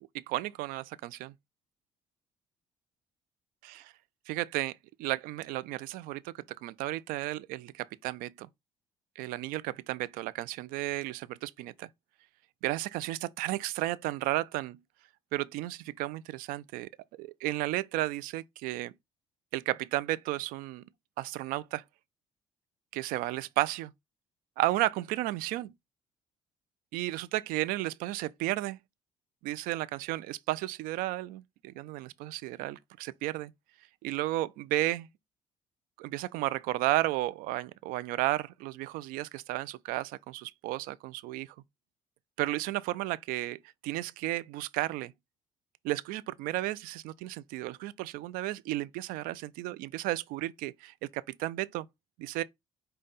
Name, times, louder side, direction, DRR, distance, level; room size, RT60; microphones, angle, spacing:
voice 1, 0.1-1.3 3.6-3.9 4.3-4.7 5.0-6.3 6.6-8.5 9.2-11.9 12.6-14.8 15.3-16.9 17.2-18.9 19.5-20.8 21.2-21.8 22.9-23.9 24.6-25.7 26.9-28.8 29.4-33.5 34.0-35.1 36.0-41.5 42.4-45.1 45.8-51.9 52.2-52.4, right 16 dB, 70° right, 0.4 m, -33 dB
5.1 x 2.2 x 4.0 m
hypercardioid pair, 60°, 15 cm